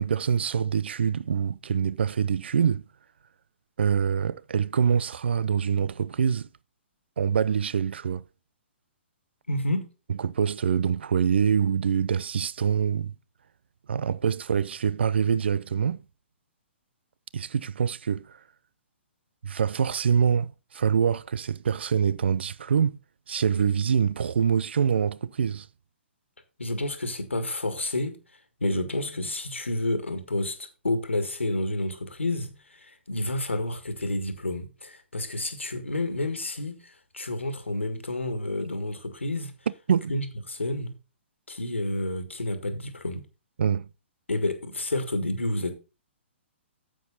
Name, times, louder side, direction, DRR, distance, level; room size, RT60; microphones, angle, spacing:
voice 1, 0.0-2.8 3.8-6.5 7.2-8.2 10.2-13.1 13.9-16.0 17.3-18.4 19.4-23.0 23.3-25.7 39.9-40.1 43.6-43.9, right 7 dB, 65° right, 0.5 m, -25 dB
voice 2, 9.5-9.9 26.6-28.2 28.6-39.5 40.1-40.9 41.5-43.3 44.3-45.7, left 1 dB, 80° left, 1.9 m, -30 dB
9.2 x 7.8 x 4.0 m
figure-of-eight pair, 120°, 6 cm